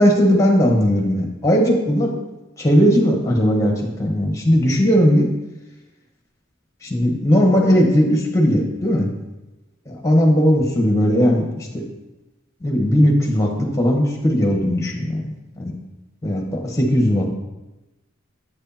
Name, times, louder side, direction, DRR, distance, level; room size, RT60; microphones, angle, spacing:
voice 1, 0.0-2.2 2.6-5.3 6.8-9.1 9.9-11.8 12.6-15.7 16.2-17.3, equal, 15° left, 1 dB, 1.3 m, -18 dB
8.5 x 6.3 x 3.0 m, 1.0 s
head